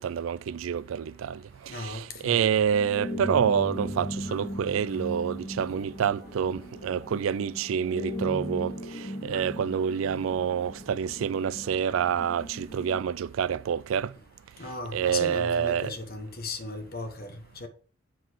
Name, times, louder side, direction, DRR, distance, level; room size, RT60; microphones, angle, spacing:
voice 1, 0.0-14.1 14.9-15.9, right 8 dB, 85° right, 0.3 m, -27 dB
voice 2, 1.7-2.6 14.6-17.7, left 2 dB, 50° left, 1.3 m, -37 dB
sound 1, 2.7-13.0, equal, 30° left, 2.3 m, -38 dB
7.6 x 4.0 x 6.3 m
head